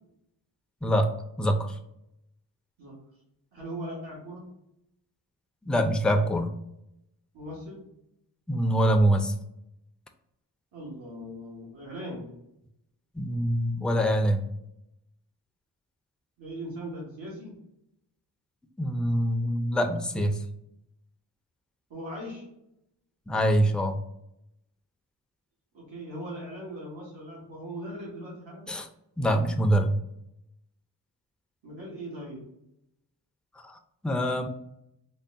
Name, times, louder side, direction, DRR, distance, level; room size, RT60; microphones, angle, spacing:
voice 1, 0.8-1.8 5.7-6.5 8.5-9.3 13.1-14.4 18.8-20.4 23.3-24.0 28.7-28.9 29.2-30.0 33.6-33.8 34.0-34.5, equal, ahead, 6 dB, 0.3 m, -24 dB
voice 2, 3.5-4.4 7.3-7.8 10.7-12.2 16.4-17.6 21.9-22.4 25.7-28.7 31.6-32.4, equal, 90° right, -4 dB, 1.3 m, -39 dB
3.9 x 2.1 x 3.5 m, 0.82 s
cardioid pair, 55°, 44 cm